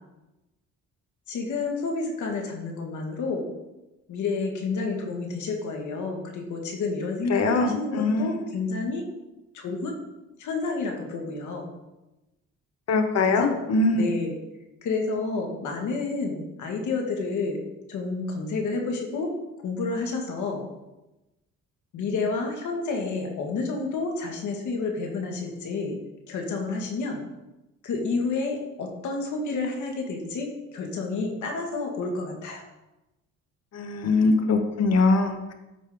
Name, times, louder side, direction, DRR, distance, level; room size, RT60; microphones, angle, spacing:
voice 1, 1.3-3.5 4.1-9.1 9.5-10.0 10.4-11.7 13.2-13.6 13.9-14.4 14.8-17.6 17.9-19.3 19.6-20.6 21.9-26.0 26.3-27.2 27.8-32.6, left 3 dB, 75° left, 1 dB, 2.0 m, -30 dB
voice 2, 7.3-8.3 12.9-14.1 33.7-35.5, left 3 dB, 60° left, 6 dB, 1.2 m, -22 dB
13.5 x 5.2 x 3.9 m, 1.0 s
cardioid pair, 90°, 30 cm